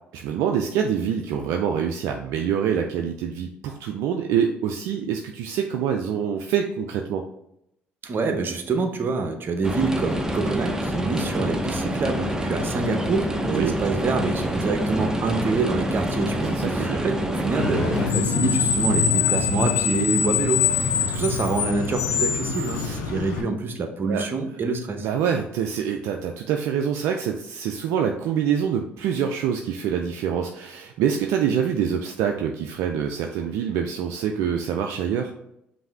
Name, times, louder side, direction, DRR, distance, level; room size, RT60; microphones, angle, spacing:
voice 1, 0.1-7.2 13.5-13.8 16.5-17.0 22.7-23.0 24.1-24.2 25.0-35.3, right 8 dB, 65° right, 4 dB, 0.4 m, -25 dB
voice 2, 8.0-25.1, right 3 dB, 40° right, 6 dB, 0.8 m, -26 dB
sound 1, 9.6-18.1, equal, 10° right, 0.7 m, -27 dB
Screech, 17.6-23.4, left 6 dB, 75° left, 0.7 m, -24 dB
5.4 x 2.7 x 3.4 m, 0.79 s
hypercardioid pair, 55°, 5 cm